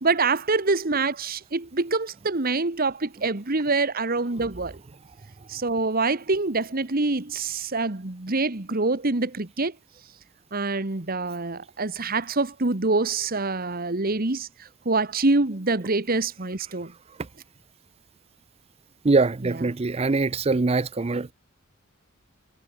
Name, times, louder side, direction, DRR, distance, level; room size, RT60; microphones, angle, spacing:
voice 1, 0.0-4.7 5.5-9.7 10.5-14.5 14.8-16.9, right 3 dB, 45° right, 1.5 m, -25 dB
voice 2, 19.0-21.3, right 3 dB, 30° right, 0.5 m, -23 dB
head